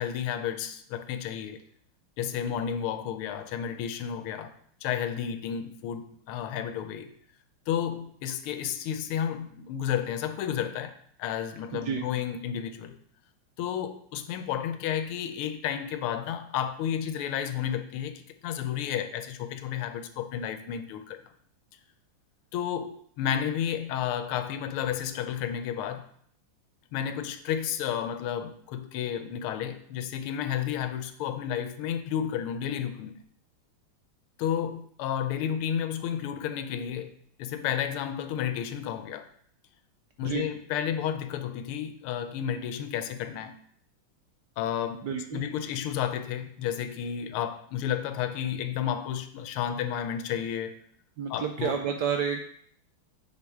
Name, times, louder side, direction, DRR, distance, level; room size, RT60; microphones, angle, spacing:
voice 1, 0.0-1.6 2.2-4.5 4.8-7.1 7.7-13.0 13.6-21.2 22.5-26.1 26.9-33.2 34.4-37.1 37.4-39.3 40.2-43.6 44.6-45.0 45.3-50.8 51.3-51.8, left 9 dB, 80° left, 1.5 m, -32 dB
voice 2, 11.7-12.1 40.2-40.4 45.0-45.4 51.2-52.4, right 7 dB, 85° right, 0.9 m, -30 dB
9.1 x 5.0 x 3.5 m
omnidirectional pair, 2.4 m